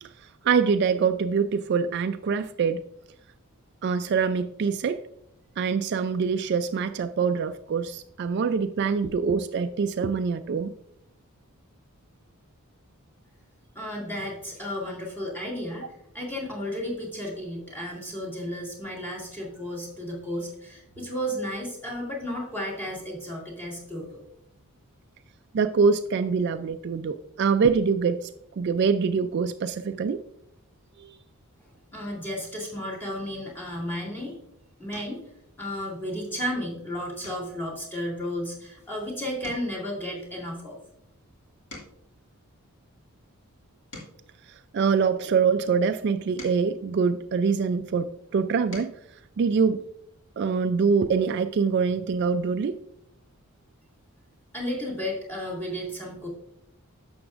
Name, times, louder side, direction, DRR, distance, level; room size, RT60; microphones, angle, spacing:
voice 1, 0.4-2.8 3.8-5.0 5.6-10.7 25.5-28.3 28.6-30.2 31.0-31.2 44.7-48.9 49.4-49.8 50.4-52.8, right 5 dB, 50° right, 9 dB, 0.3 m, -24 dB
voice 2, 13.7-15.9 16.1-24.2 31.9-34.4 34.8-35.2 35.6-40.8 54.5-56.3, equal, 10° left, -2 dB, 2.2 m, -33 dB
sound 1, 34.9-35.3 35.8-36.2 36.5-36.7 37.2-39.0 39.3-42.2 42.8-45.3 46.0-47.8 48.3-49.1 50.5-50.6 50.9-51.0, left 1 dB, 60° left, 2.2 m, -48 dB
11.0 x 7.0 x 2.5 m, 0.76 s
head